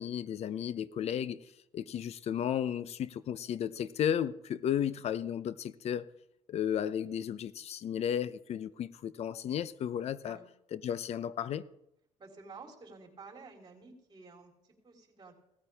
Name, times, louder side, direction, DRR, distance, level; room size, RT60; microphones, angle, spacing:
voice 1, 0.0-1.4 1.7-6.1 6.5-10.4 10.7-11.6, left 9 dB, 55° left, 0.7 m, -34 dB
voice 2, 12.2-15.3, right 4 dB, 35° right, 4.2 m, -51 dB
18.0 x 13.5 x 3.5 m
cardioid pair, 100°, 13 cm